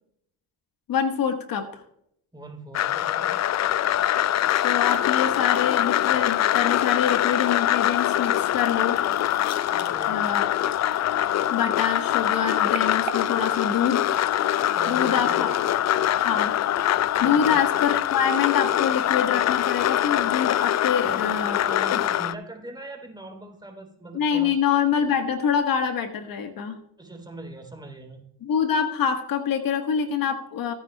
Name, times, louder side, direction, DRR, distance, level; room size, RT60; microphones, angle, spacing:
voice 1, 0.9-1.8 4.6-9.0 10.1-10.4 11.5-14.1 14.9-15.5 16.2-16.6 17.2-21.6 21.9-22.0 24.1-26.7 28.4-30.7, left 7 dB, 60° left, 6 dB, 1.4 m, -25 dB
voice 2, 2.3-3.4 9.7-10.3 14.7-15.5 17.2-17.6 20.8-24.5 27.0-28.3, right 2 dB, 10° right, 1 dB, 3.4 m, -40 dB
sound 1, 2.7-22.3, left 12 dB, 45° left, 0.4 m, -23 dB
sound 2, 9.9-14.9 15.5-15.7 16.0-16.1, right 10 dB, 70° right, 1.3 m, -43 dB
17.5 x 9.7 x 2.3 m, 0.72 s
supercardioid pair, 75°, 39 cm